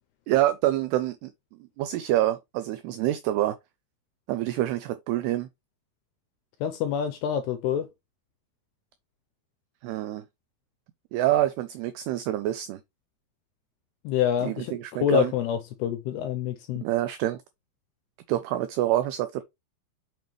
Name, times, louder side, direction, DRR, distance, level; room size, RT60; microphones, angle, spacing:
voice 1, 0.3-1.3 1.8-3.6 4.3-5.5 9.8-10.2 11.1-12.8 14.4-15.3 16.8-17.4 18.3-19.4, right 14 dB, 85° right, 2.3 m, -26 dB
voice 2, 6.6-7.9 14.1-16.8, left 9 dB, 85° left, 2.3 m, -27 dB
7.1 x 5.9 x 3.1 m
omnidirectional pair, 5.4 m